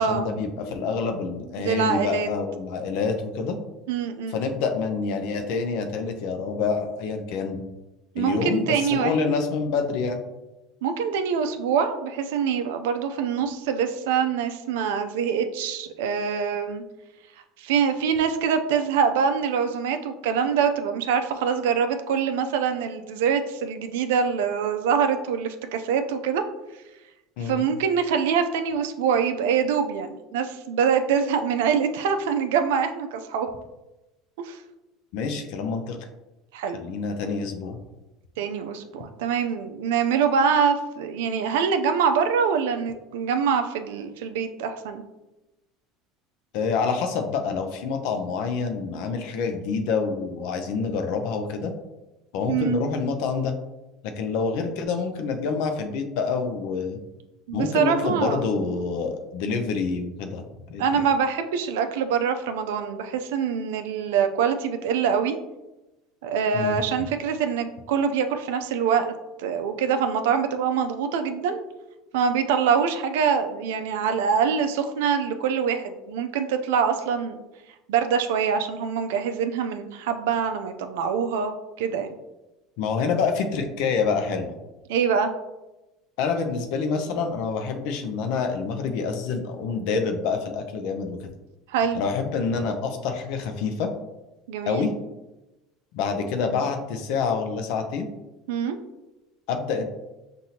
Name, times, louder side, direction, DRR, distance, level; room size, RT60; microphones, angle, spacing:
voice 1, 0.0-3.6 4.3-7.6 8.2-10.2 27.4-27.6 35.1-36.0 36.7-37.8 46.5-51.7 52.3-53.5 54.0-57.0 57.5-61.1 66.5-66.8 82.8-84.5 86.2-91.2 91.9-93.9 94.7-94.9 95.9-98.1 99.5-99.8, left 5 dB, 70° left, 6 dB, 0.6 m, -27 dB
voice 2, 1.6-2.3 3.9-4.4 8.1-9.3 10.8-16.8 17.6-26.4 27.4-33.5 34.4-34.6 36.5-36.8 38.4-45.0 52.5-52.8 57.5-58.4 60.8-65.4 66.2-69.1 69.4-71.6 72.1-77.4 77.9-82.1 84.9-85.3 91.7-92.0 94.5-94.9 98.5-98.8, right 7 dB, 85° right, 8 dB, 0.4 m, -24 dB
5.8 x 2.6 x 2.8 m, 1.0 s
supercardioid pair, 105°, 0 cm